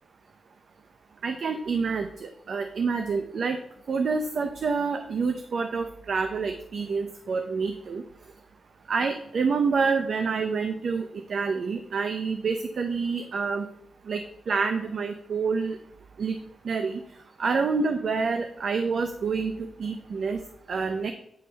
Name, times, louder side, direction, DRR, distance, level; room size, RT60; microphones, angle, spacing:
voice 1, 1.2-3.6 3.9-8.0 8.9-13.7 14.1-15.8 16.2-16.4 16.6-17.0 17.4-20.4 20.7-21.1, right 5 dB, 65° right, 6 dB, 0.6 m, -27 dB
9.5 x 3.3 x 5.2 m, 0.77 s
cardioid pair, 80°, 0 cm